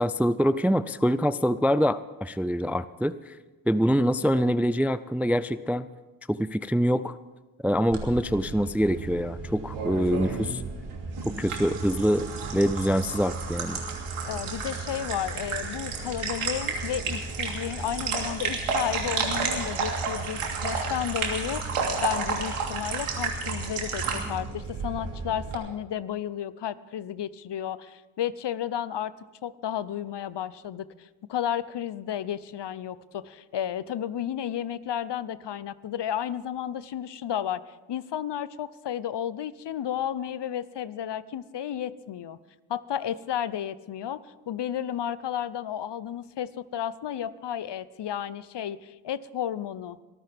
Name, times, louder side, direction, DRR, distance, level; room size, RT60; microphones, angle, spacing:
voice 1, 0.0-3.4 3.7-5.9 6.3-7.1 7.6-10.6 11.3-13.8, equal, 5° right, 15 dB, 0.4 m, -25 dB
sound 1, 7.9-25.6, right 4 dB, 80° right, 2.9 m, -32 dB
voice 2, 14.3-21.6 22.0-29.1 29.4-37.6 37.9-42.4 42.7-44.2 44.5-50.0, left 10 dB, 55° left, 17 dB, 0.8 m, -32 dB
23.0 x 14.0 x 3.6 m, 1.2 s
supercardioid pair, 50°, 50 cm